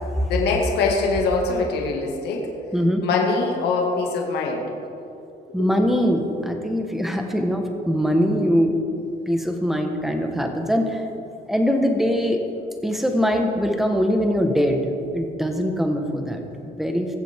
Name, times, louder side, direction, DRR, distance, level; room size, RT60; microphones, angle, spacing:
voice 1, 0.3-2.5 3.0-4.7 5.5-5.7, left 3 dB, 75° left, 0 dB, 2.1 m, -23 dB
voice 2, 2.7-3.0 5.5-8.8 9.3-11.0 11.5-12.4 12.8-17.2, equal, ahead, 3 dB, 1.4 m, -22 dB
21.5 x 7.5 x 3.7 m, 2.7 s
cardioid pair, 110°, 17 cm